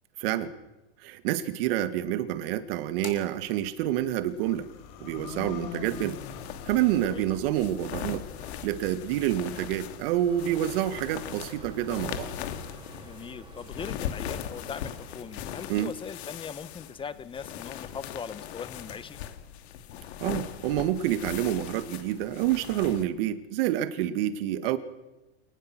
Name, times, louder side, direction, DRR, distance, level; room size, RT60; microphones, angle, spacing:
voice 1, 0.2-0.5 1.0-4.7 5.0-6.2 6.7-8.2 8.6-12.3 15.7-15.9 20.2-24.8, right 12 dB, 60° right, 11 dB, 2.2 m, -28 dB
sound 1, 2.9-12.8, left 7 dB, 50° left, 5.3 m, -45 dB
sound 2, 5.9-23.0, left 10 dB, 70° left, 2.8 m, -40 dB
sound 3, 10.3-17.3, right 5 dB, 15° right, 4.0 m, -51 dB
voice 2, 13.0-19.2, left 6 dB, 15° left, 14 dB, 1.2 m, -40 dB
27.5 x 19.5 x 6.3 m, 1.0 s
supercardioid pair, 135°, 33 cm